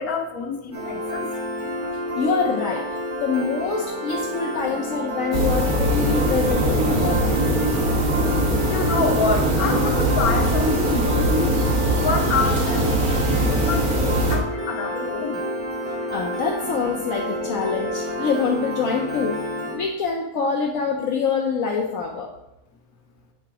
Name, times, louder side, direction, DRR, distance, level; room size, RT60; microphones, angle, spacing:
voice 1, 0.0-1.3 8.6-11.6 11.9-15.4, left 5 dB, 90° left, 2 dB, 1.5 m, -27 dB
Piano, 0.7-19.8, equal, 50° right, 2.0 m, -29 dB
voice 2, 2.1-2.8 3.2-7.3 16.1-19.4 19.7-22.3, left 5 dB, 70° left, -1 dB, 1.2 m, -25 dB
sound 1, 5.3-14.4, right 1 dB, 75° right, 1.7 m, -21 dB
8.6 x 3.9 x 4.8 m, 0.87 s
omnidirectional pair, 1.5 m